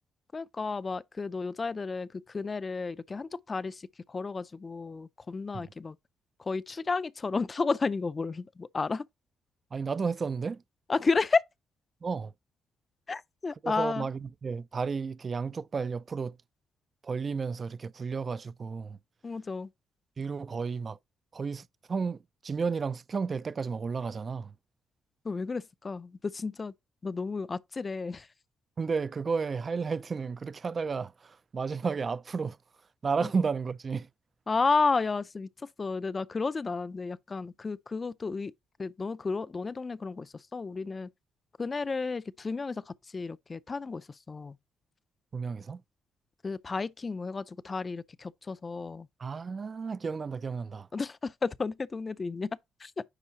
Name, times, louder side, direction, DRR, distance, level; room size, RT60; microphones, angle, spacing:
voice 1, 0.3-6.0 6.4-9.0 10.9-11.4 13.1-14.1 19.2-19.7 25.2-26.7 27.0-28.3 33.2-33.3 34.5-35.5 35.8-38.5 38.8-41.1 41.6-44.6 46.4-49.1 50.9-53.0, left 4 dB, 30° left, 0.4 m, -32 dB
voice 2, 9.7-10.6 12.0-12.3 13.6-16.4 17.0-19.0 20.2-21.0 21.3-24.5 28.8-32.6 33.0-34.1 45.3-45.8 49.2-50.9, right 5 dB, 40° right, 0.3 m, -32 dB
9.9 x 4.4 x 2.7 m
cardioid pair, 90°, 0 cm